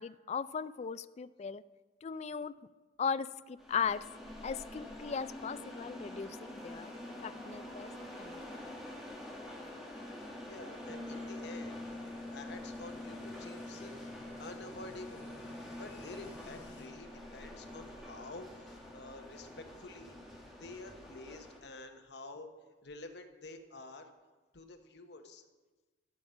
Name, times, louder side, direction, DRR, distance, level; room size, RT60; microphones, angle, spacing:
voice 1, 0.0-1.6 2.0-2.5 3.0-4.0 4.4-6.9 7.2-7.9 8.2-8.4, left 6 dB, 35° left, 15 dB, 0.3 m, -37 dB
sound 1, 3.6-21.6, left 1 dB, ahead, 1.7 m, -47 dB
sound 2, 6.4-16.9, left 1 dB, 80° left, 3.1 m, -61 dB
voice 2, 10.5-11.8 12.3-14.1 14.4-15.2 15.7-20.2 20.6-22.5 22.8-24.1 24.5-25.4, left 2 dB, 65° left, 6 dB, 1.0 m, -49 dB
Bass guitar, 10.9-20.6, left 2 dB, 20° right, 1.1 m, -49 dB
14.5 x 5.1 x 7.2 m, 1.2 s
head